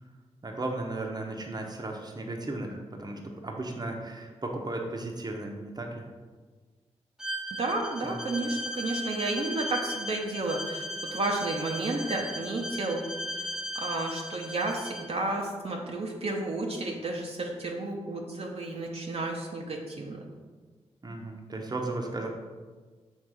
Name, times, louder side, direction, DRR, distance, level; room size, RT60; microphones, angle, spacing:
voice 1, 0.4-6.1 8.0-8.2 21.0-22.3, right 2 dB, 35° right, 2 dB, 0.9 m, -35 dB
Bowed string instrument, 7.2-15.1, equal, 5° right, 0.6 m, -37 dB
voice 2, 7.5-13.5 13.7-20.3, right 2 dB, 60° right, -1 dB, 0.8 m, -32 dB
6.4 x 3.2 x 4.8 m, 1.4 s
cardioid pair, 55°, 12 cm